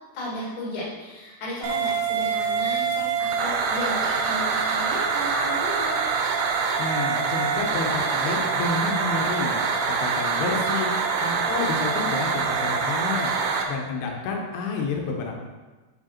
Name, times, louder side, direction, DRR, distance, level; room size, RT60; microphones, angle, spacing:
voice 1, 0.1-6.0, left 1 dB, 40° left, -7 dB, 2.5 m, -34 dB
sound 1, 1.6-13.6, right 5 dB, 80° right, 2.7 m, -25 dB
voice 2, 6.8-9.5 10.0-10.9 11.2-13.3 13.7-15.3, left 4 dB, 90° left, 1 dB, 3.0 m, -29 dB
7.4 x 5.0 x 4.3 m, 1.2 s
omnidirectional pair, 4.4 m